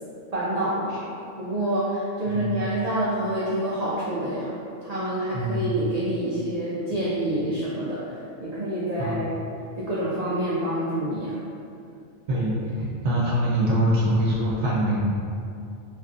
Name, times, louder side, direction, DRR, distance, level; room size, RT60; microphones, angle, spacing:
voice 1, 0.3-1.1 1.4-4.6 4.8-8.0 8.4-9.4 9.8-11.4, right 1 dB, 60° right, -8 dB, 0.4 m, -27 dB
voice 2, 2.2-2.7 5.3-5.8 9.0-9.2 12.3-15.0, right 1 dB, 85° right, -7 dB, 0.9 m, -24 dB
3.0 x 2.5 x 2.4 m, 2.5 s
omnidirectional pair, 1.1 m